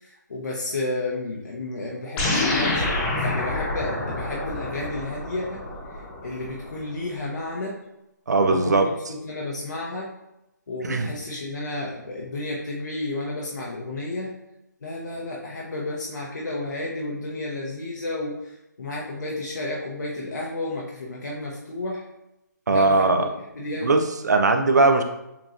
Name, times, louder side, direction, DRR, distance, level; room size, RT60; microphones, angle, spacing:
voice 1, 0.0-5.6 6.2-7.8 8.4-10.1 10.7-14.3 14.8-22.1 22.7-23.3 23.5-23.9, left 2 dB, 65° left, -3 dB, 1.0 m, -32 dB
sound 1, 2.2-6.8, left 2 dB, 10° left, 0.5 m, -27 dB
voice 2, 8.3-8.9 10.8-11.1 22.7-23.3 23.8-25.0, right 3 dB, 65° right, 5 dB, 0.6 m, -19 dB
7.0 x 2.9 x 2.6 m, 0.91 s
hypercardioid pair, 165°, 10 cm